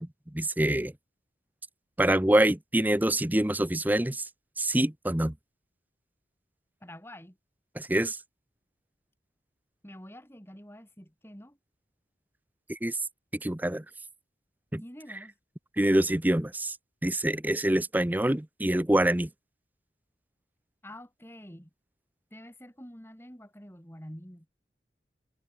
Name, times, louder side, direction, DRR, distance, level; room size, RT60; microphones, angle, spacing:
voice 1, 0.3-0.9 2.0-4.3 4.6-5.3 7.8-8.2 12.7-13.0 13.4-13.8 14.7-14.8 15.8-16.8 17.0-19.3, right 1 dB, 10° right, 0.7 m, -25 dB
voice 2, 6.8-7.4 9.8-11.6 14.8-15.3 20.8-21.7 22.3-24.5, equal, 15° left, 7.1 m, -47 dB
head